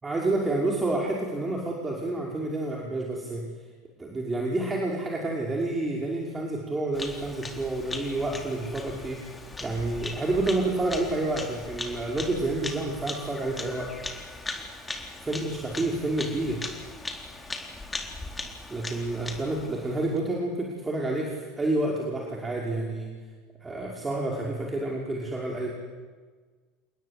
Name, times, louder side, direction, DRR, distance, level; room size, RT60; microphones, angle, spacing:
voice 1, 0.0-3.4 4.0-13.9 15.2-16.6 18.7-23.1 23.6-25.7, right 2 dB, 20° right, -1 dB, 5.5 m, -29 dB
Bird vocalization bird call bird song, 6.9-20.2, left 3 dB, 15° left, 4.1 m, -39 dB
29.5 x 21.5 x 8.7 m, 1.5 s
figure-of-eight pair, 70°, 0 cm